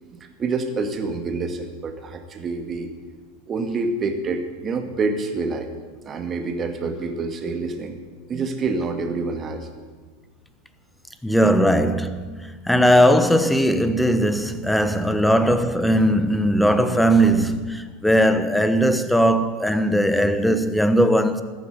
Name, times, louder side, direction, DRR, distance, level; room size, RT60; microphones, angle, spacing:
voice 1, 0.0-2.9 3.5-5.7 6.0-8.0 8.3-9.7 11.4-11.7 14.9-15.2, right 3 dB, 30° right, 2.0 m, -27 dB
voice 2, 11.2-21.4, equal, 5° left, 1.1 m, -19 dB
14.0 x 10.0 x 9.3 m
figure-of-eight pair, 85°, 0 cm